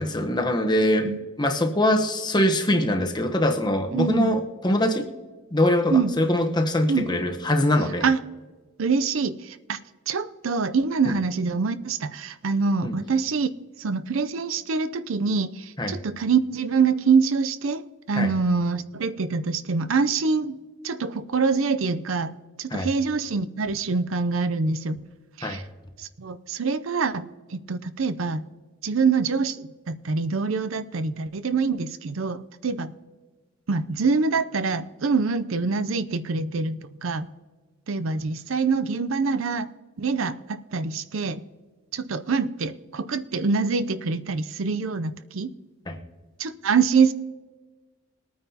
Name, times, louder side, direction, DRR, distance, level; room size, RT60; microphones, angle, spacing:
voice 1, 0.0-1.1 1.4-5.1 5.5-8.0 11.1-11.2 12.8-12.9 15.8-16.0 18.2-18.3 22.7-22.9 25.4-25.6 45.9-46.0, left 1 dB, 20° left, 4 dB, 1.0 m, -23 dB
voice 2, 3.9-4.3 5.9-6.1 6.9-7.1 8.0-8.2 8.8-9.8 10.1-13.5 13.8-20.6 20.8-25.0 25.4-25.6 26.0-27.2 27.5-28.4 28.8-32.9 33.7-37.3 37.9-39.7 40.0-41.4 41.9-45.5 46.4-47.1, right 4 dB, 70° right, 13 dB, 0.5 m, -25 dB
21.5 x 9.3 x 2.8 m, 1.3 s
head